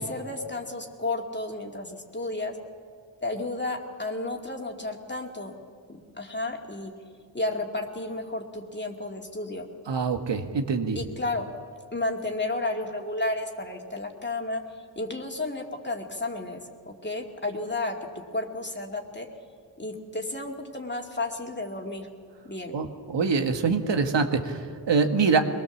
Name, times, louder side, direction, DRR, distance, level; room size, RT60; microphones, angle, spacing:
voice 1, 0.0-2.6 3.2-5.5 5.9-6.9 7.3-9.7 10.9-11.5 11.9-17.9 18.3-19.3 19.8-22.1 22.4-22.8, left 2 dB, 25° left, 1 dB, 2.3 m, -32 dB
voice 2, 9.9-11.0 22.7-24.6 24.9-25.4, right 5 dB, 75° right, 6 dB, 1.7 m, -24 dB
22.0 x 20.0 x 7.2 m, 2.1 s
cardioid pair, 70°, 43 cm